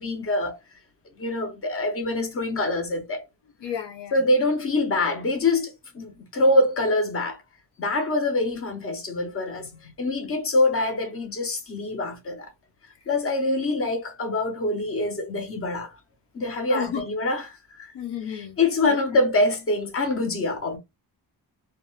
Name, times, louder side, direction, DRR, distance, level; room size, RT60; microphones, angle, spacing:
voice 1, 0.0-0.6 1.2-3.2 4.1-7.4 7.8-12.5 13.1-15.9 16.3-17.9 18.3-20.8, left 2 dB, 30° left, 0.7 m, -25 dB
voice 2, 3.6-4.2 16.7-17.1 17.9-18.6 18.9-19.0, left 8 dB, 75° left, 0.7 m, -32 dB
2.4 x 2.2 x 3.0 m
wide cardioid pair, 160°, 42 cm